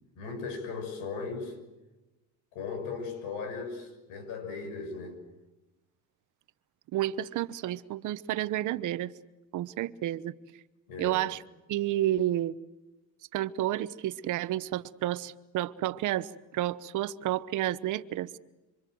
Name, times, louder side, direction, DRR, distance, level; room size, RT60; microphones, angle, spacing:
voice 1, 0.2-1.5 2.5-5.2 10.9-11.2, left 4 dB, 90° left, 6.3 m, -37 dB
voice 2, 6.9-9.1 9.5-10.3 11.0-11.4 11.7-12.6 13.3-18.3, right 13 dB, 60° right, 1.1 m, -30 dB
26.5 x 26.0 x 7.8 m
cardioid pair, 110°, 34 cm